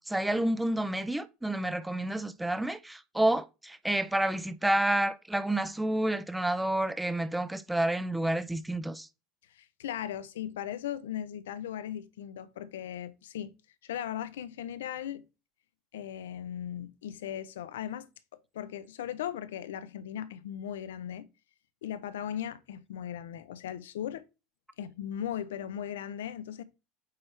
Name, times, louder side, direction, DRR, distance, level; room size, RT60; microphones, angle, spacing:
voice 1, 0.1-9.1, right 1 dB, 5° right, 0.6 m, -29 dB
voice 2, 9.5-13.5 13.8-15.3 15.9-18.1 18.5-21.3 21.8-24.2 24.8-26.6, left 10 dB, 90° left, 0.7 m, -38 dB
8.6 x 4.4 x 3.3 m
supercardioid pair, 95°, 0 cm